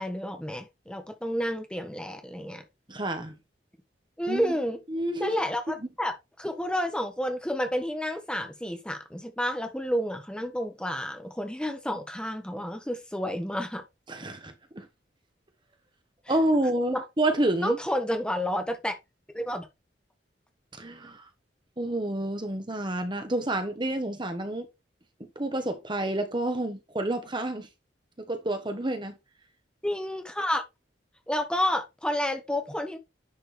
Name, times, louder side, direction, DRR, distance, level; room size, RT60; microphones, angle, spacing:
voice 1, 0.0-2.6 4.2-4.8 5.2-13.8 16.9-17.0 17.6-18.9 19.3-19.7 29.8-30.6 31.3-33.0, equal, 5° left, 1.2 m, -30 dB
voice 2, 2.9-3.4 4.3-4.5 4.9-5.3 5.8-5.9 14.1-14.9 16.3-17.8 20.8-21.2 21.8-24.7 25.3-27.7 28.3-29.1, right 1 dB, 25° right, 1.3 m, -29 dB
10.5 x 4.5 x 3.4 m
head